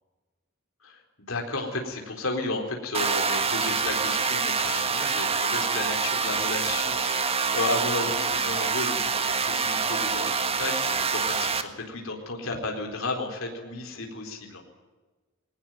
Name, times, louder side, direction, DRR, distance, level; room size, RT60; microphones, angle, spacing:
voice 1, 1.3-14.6, left 3 dB, 75° left, 2 dB, 4.2 m, -33 dB
sound 1, 2.9-11.6, right 5 dB, 30° right, 1.6 m, -26 dB
21.0 x 19.0 x 9.2 m, 1.3 s
head